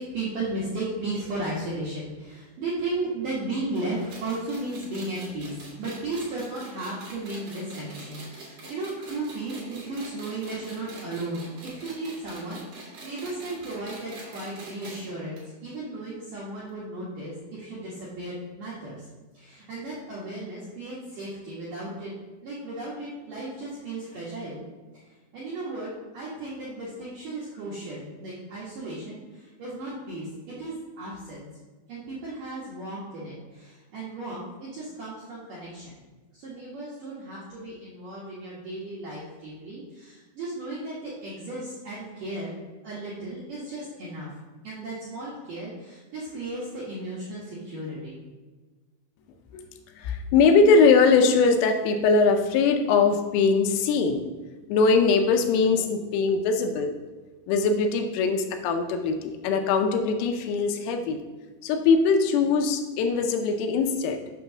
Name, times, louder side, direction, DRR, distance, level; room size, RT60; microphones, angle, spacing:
voice 1, 0.0-19.0 19.3-22.1 22.4-24.6 25.0-31.5 31.9-36.0 36.3-42.6 42.8-44.3 44.6-48.2, right 2 dB, 70° right, -8 dB, 2.0 m, -35 dB
sound 1, 3.8-15.0 15.4-15.5 15.7-15.8 16.7-16.8, right 2 dB, 45° right, 2.8 m, -44 dB
voice 2, 50.0-54.2 54.7-56.9 57.5-61.2 61.6-64.2, left 4 dB, 85° left, 5 dB, 3.1 m, -21 dB
9.1 x 3.0 x 6.2 m, 1.3 s
omnidirectional pair, 5.9 m